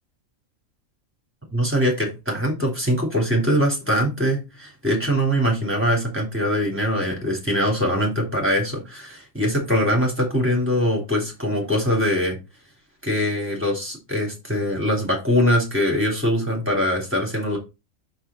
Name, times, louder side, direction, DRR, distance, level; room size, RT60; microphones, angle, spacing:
voice 1, 1.5-12.4 13.0-17.6, equal, 10° right, 3.5 m, -22 dB
6.4 x 5.8 x 4.4 m
omnidirectional pair, 1.5 m